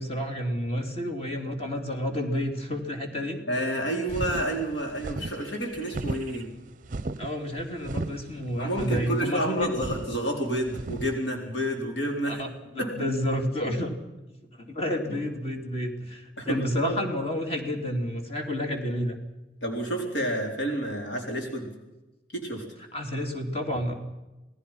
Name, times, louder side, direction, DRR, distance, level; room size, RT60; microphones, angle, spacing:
voice 1, 0.0-3.4 7.2-9.8 12.2-13.9 14.5-19.2 22.9-23.9, equal, 35° left, 4 dB, 3.3 m, -30 dB
voice 2, 3.5-6.5 8.6-12.4 12.8-12.9 15.1-15.2 16.4-16.9 19.6-21.7 22.3-22.6, right 1 dB, 75° left, 1 dB, 4.3 m, -29 dB
sound 1, 4.1-11.1, right 2 dB, 45° right, 0.6 m, -35 dB
28.0 x 18.0 x 5.8 m, 1.1 s
head